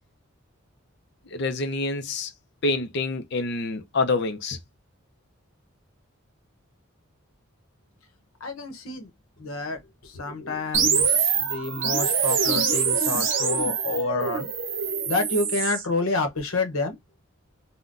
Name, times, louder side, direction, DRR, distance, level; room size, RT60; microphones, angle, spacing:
voice 1, 1.3-2.3 2.6-4.6, left 3 dB, 50° left, 0.5 m, -27 dB
voice 2, 8.4-9.1 9.4-14.5 15.1-17.0, left 3 dB, 75° left, 0.8 m, -29 dB
sound 1, 10.7-15.8, right 6 dB, 60° right, 0.7 m, -24 dB
3.6 x 2.1 x 2.4 m
head